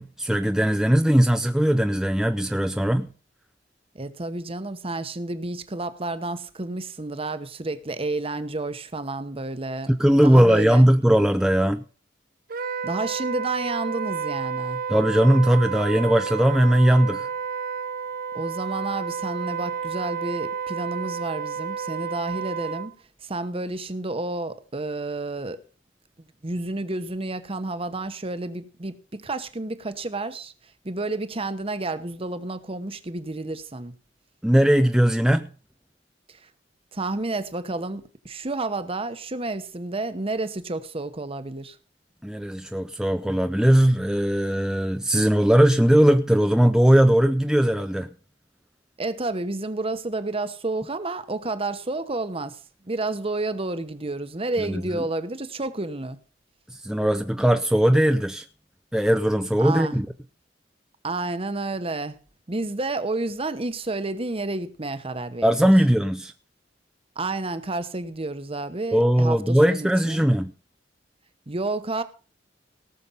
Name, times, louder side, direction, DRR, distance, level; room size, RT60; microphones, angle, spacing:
voice 1, 0.0-3.1 9.9-11.8 14.9-17.3 34.4-35.5 42.2-48.1 54.7-55.0 56.7-58.5 58.9-60.1 65.4-66.3 68.9-70.5, equal, 5° right, 0.5 m, -19 dB
voice 2, 3.9-9.9 10.2-10.9 12.8-14.8 18.3-22.9 23.2-25.6 26.4-30.5 30.8-33.9 36.3-36.5 36.9-41.8 49.0-52.6 52.8-56.2 59.6-59.9 61.0-62.2 62.5-65.5 67.2-70.3 71.5-72.0, right 2 dB, 30° right, 1.0 m, -30 dB
Wind instrument woodwind instrument, 12.5-22.9, right 6 dB, 50° right, 0.6 m, -31 dB
18.0 x 6.9 x 5.5 m
head